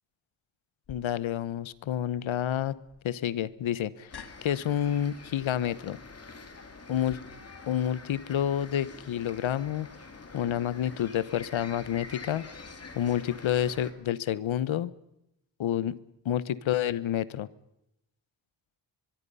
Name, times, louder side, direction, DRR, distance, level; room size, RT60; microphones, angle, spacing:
voice 1, 0.9-2.8 3.0-4.1 4.4-6.0 6.9-7.2 7.7-9.9 10.3-12.4 12.9-14.9 15.6-16.0 16.2-17.5, left 10 dB, 85° left, 18 dB, 1.1 m, -29 dB
sound 1, 0.9-7.2, left 6 dB, 55° left, 2.1 m, -53 dB
sound 2, 4.1-13.9, left 4 dB, 30° left, 2.8 m, -46 dB
24.0 x 22.5 x 5.5 m, 0.83 s
wide cardioid pair, 145°, 47 cm